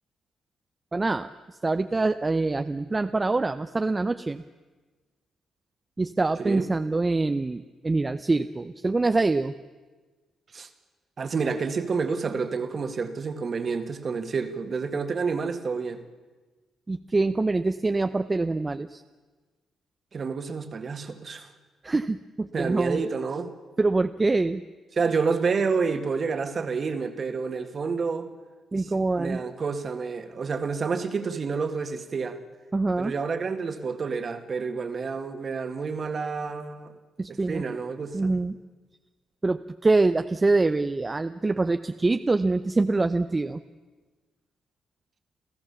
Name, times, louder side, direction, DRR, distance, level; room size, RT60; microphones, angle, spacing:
voice 1, 0.9-4.4 6.0-9.5 16.9-19.0 21.8-23.0 23.8-24.6 28.7-29.4 32.7-33.1 37.2-37.6 38.1-38.6 39.4-43.6, right 3 dB, 25° right, 9 dB, 0.6 m, -25 dB
voice 2, 11.2-16.0 20.1-21.5 22.5-23.5 25.0-28.3 28.7-32.4 33.0-36.9 37.3-38.4, right 5 dB, 45° right, 7 dB, 1.9 m, -29 dB
28.5 x 14.5 x 7.1 m, 1.3 s
cardioid pair, 85°, 0 cm